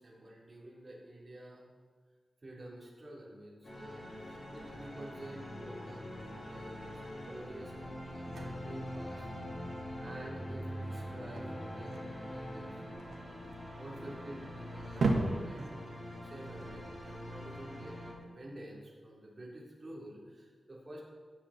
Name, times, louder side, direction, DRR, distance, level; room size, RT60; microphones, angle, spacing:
voice 1, 0.0-1.7 2.4-9.3 10.0-12.8 13.2-13.4 13.8-21.0, right 1 dB, 30° right, -5 dB, 3.7 m, -50 dB
sound 1, 3.6-18.1, equal, 40° left, 4.3 m, -44 dB
sound 2, 4.4-17.6, right 2 dB, 75° right, 1.8 m, -40 dB
18.0 x 8.0 x 4.4 m, 1.5 s
wide cardioid pair, 140°, 0 cm